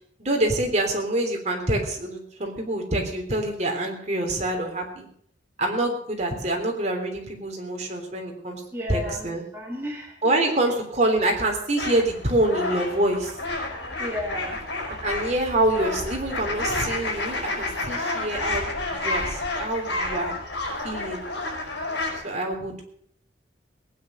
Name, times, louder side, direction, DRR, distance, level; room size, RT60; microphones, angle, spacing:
voice 1, 0.2-5.1 5.6-8.6 8.9-9.4 10.2-13.4 15.0-20.3 20.8-21.3 22.2-22.8, right 1 dB, 40° right, 2 dB, 3.5 m, -26 dB
voice 2, 8.7-10.4 14.0-14.6, left 1 dB, 15° right, -1 dB, 1.8 m, -33 dB
sound 1, 11.8-22.2, left 2 dB, 70° left, 5.5 m, -30 dB
18.5 x 9.8 x 6.5 m, 0.63 s
head